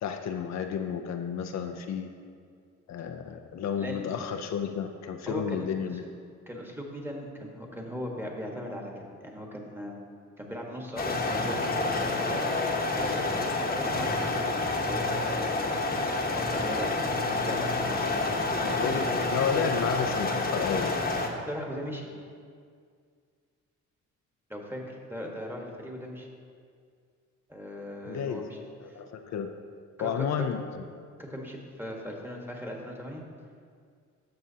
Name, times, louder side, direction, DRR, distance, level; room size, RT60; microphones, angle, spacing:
voice 1, 0.0-2.1 2.9-6.1 18.6-21.0 28.1-28.5 28.9-29.5 30.0-30.6, left 7 dB, 65° left, 5 dB, 0.6 m, -31 dB
voice 2, 5.3-5.6 6.5-10.0 10.4-13.3 13.5-15.8 16.3-18.4 18.9-19.2 19.5-19.7 21.5-22.1 24.5-26.3 27.5-28.6 28.9-29.0 30.0-30.4 31.2-33.2, equal, 5° right, 0 dB, 1.4 m, -39 dB
sound 1, 11.0-21.3, left 2 dB, 30° left, 1.0 m, -28 dB
13.0 x 6.4 x 2.8 m, 2.2 s
cardioid pair, 90°, 30 cm